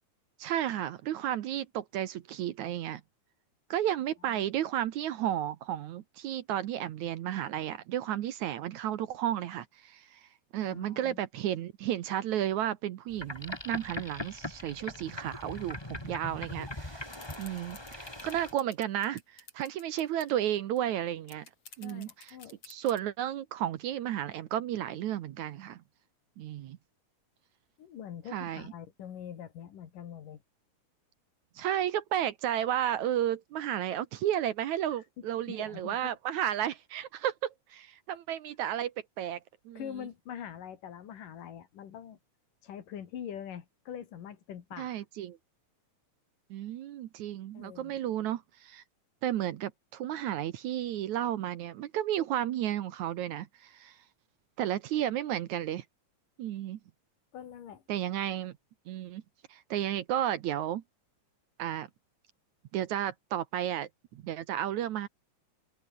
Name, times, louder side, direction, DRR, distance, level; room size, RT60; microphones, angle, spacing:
voice 1, 0.4-3.0 3.7-17.0 17.4-21.5 21.8-22.4 22.7-25.8 26.4-26.8 28.3-28.7 31.6-39.4 39.7-39.8 44.8-45.4 46.5-48.8 49.2-54.0 54.6-55.8 56.4-56.8 57.9-58.5 58.9-59.2 59.5-60.8 61.6-61.9 62.7-65.1, right 11 dB, 70° right, 2.2 m, -33 dB
voice 2, 10.6-11.2 21.8-22.6 27.8-30.4 35.2-36.1 39.8-42.2 42.6-45.0 47.5-48.0 57.3-57.8, left 9 dB, 70° left, 3.7 m, -44 dB
Boat Water vehicle, 13.1-18.5, left 1 dB, 10° left, 2.7 m, -41 dB
sound 1, 17.1-20.3 20.8-20.9 21.1-23.0, left 4 dB, 40° left, 5.2 m, -51 dB
omnidirectional pair, 3.9 m